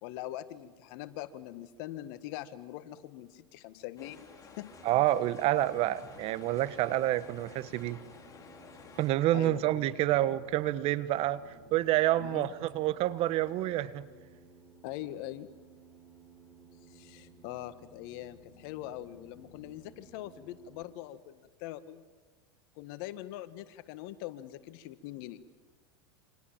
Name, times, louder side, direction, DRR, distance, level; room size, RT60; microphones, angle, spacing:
voice 1, 0.0-4.2 4.6-4.7 9.3-9.6 12.2-12.5 14.8-15.5 16.9-22.0 22.7-25.4, left 14 dB, 60° left, 1.6 m, -42 dB
sound 1, 4.0-9.1, left 5 dB, 25° left, 4.6 m, -53 dB
sound 2, 4.7-20.8, right 1 dB, 5° right, 6.6 m, -57 dB
voice 2, 4.8-8.0 9.0-11.4 11.7-14.1, right 14 dB, 45° right, 1.2 m, -28 dB
28.0 x 26.0 x 7.5 m
hypercardioid pair, 115°, 14 cm